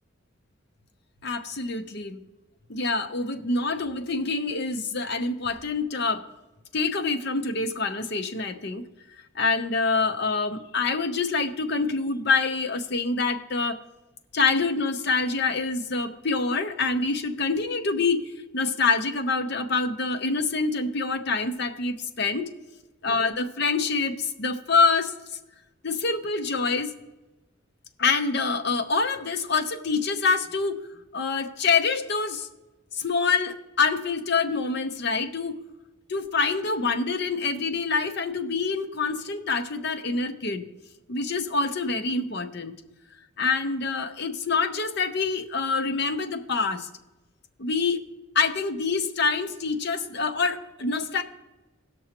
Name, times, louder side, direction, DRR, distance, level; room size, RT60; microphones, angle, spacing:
voice 1, 1.2-2.2 2.7-6.2 6.7-8.8 9.3-13.8 14.3-22.5 23.0-25.1 25.8-26.9 28.0-30.8 31.1-32.5 32.9-35.6 36.1-40.6 41.1-42.7 43.4-46.9 47.6-48.0 48.3-51.2, left 4 dB, 55° left, 8 dB, 0.8 m, -26 dB
18.5 x 6.3 x 2.9 m, 1.1 s
head